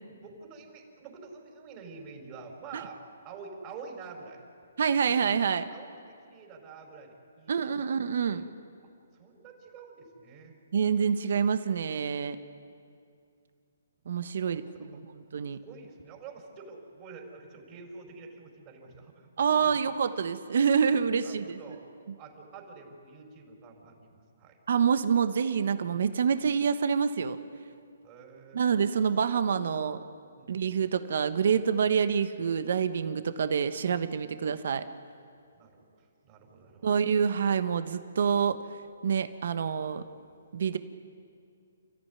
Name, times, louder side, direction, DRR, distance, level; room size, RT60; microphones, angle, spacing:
voice 1, 0.1-4.4 4.7-4.8 5.7-7.6 7.9-8.0 8.3-8.5 9.1-10.5 14.4-14.7 15.6-19.7 21.2-24.6 28.0-28.7 30.3-30.6 35.5-36.9, right 4 dB, 30° right, 0 dB, 4.9 m, -48 dB
voice 2, 4.8-5.7 7.5-8.4 10.7-12.4 14.1-15.6 19.4-21.6 24.7-27.4 28.5-30.0 30.5-34.8 36.8-38.6 39.0-40.0 40.5-40.8, right 6 dB, 60° right, 11 dB, 1.2 m, -27 dB
30.0 x 14.5 x 9.7 m, 2.4 s
hypercardioid pair, 145°, 0 cm